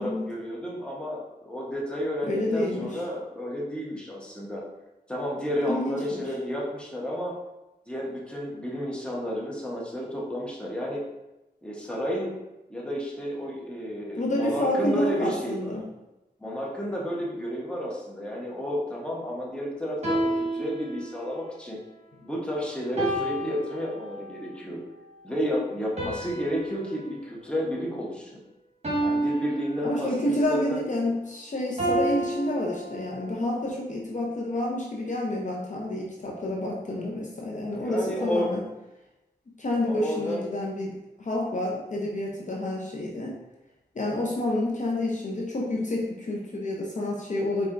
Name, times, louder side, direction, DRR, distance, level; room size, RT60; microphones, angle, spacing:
voice 1, 0.0-4.6 5.1-7.3 7.9-11.0 11.6-12.3 12.7-15.7 16.4-21.8 22.2-24.8 25.2-28.4 29.0-30.8 37.7-38.5 39.8-40.4, equal, 5° left, -4 dB, 1.0 m, -31 dB
voice 2, 2.2-3.0 5.7-6.3 14.1-15.8 29.8-38.6 39.6-43.4 43.9-47.7, left 1 dB, 45° left, -2 dB, 0.7 m, -29 dB
sound 1, 20.0-21.4 23.0-24.4 26.0-28.3 28.8-30.4 31.8-33.4, right 1 dB, 40° right, 1.5 m, -30 dB
4.4 x 3.3 x 2.5 m, 0.98 s
cardioid pair, 60°, 18 cm